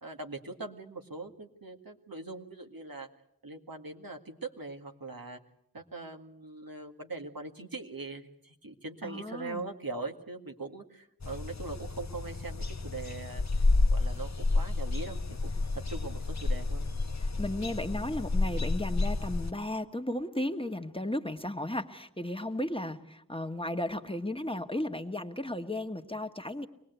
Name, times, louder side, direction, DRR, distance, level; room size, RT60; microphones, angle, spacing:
voice 1, 0.0-3.1 3.4-5.4 5.7-13.4 13.9-16.9, right 3 dB, 75° right, 3 dB, 2.0 m, -41 dB
voice 2, 9.0-9.7 17.2-26.7, left 1 dB, 15° left, 6 dB, 1.4 m, -35 dB
sound 1, 11.2-19.5, left 3 dB, 50° left, 1.0 m, -30 dB
25.0 x 19.5 x 8.1 m, 0.75 s
wide cardioid pair, 45°, 35 cm